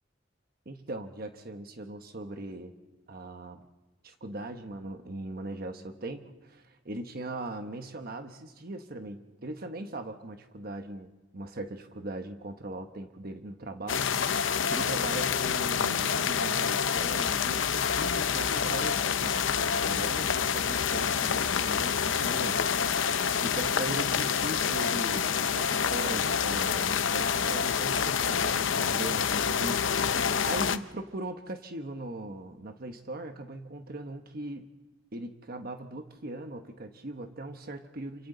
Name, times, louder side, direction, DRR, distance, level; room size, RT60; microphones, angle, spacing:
voice 1, 0.6-2.7 3.1-3.7 4.0-23.0 23.4-34.7 35.1-38.3, right 2 dB, 50° right, 6 dB, 1.1 m, -40 dB
sound 1, 13.9-30.8, left 7 dB, 80° left, 0.7 m, -27 dB
27.5 x 25.5 x 3.9 m, 1.1 s
head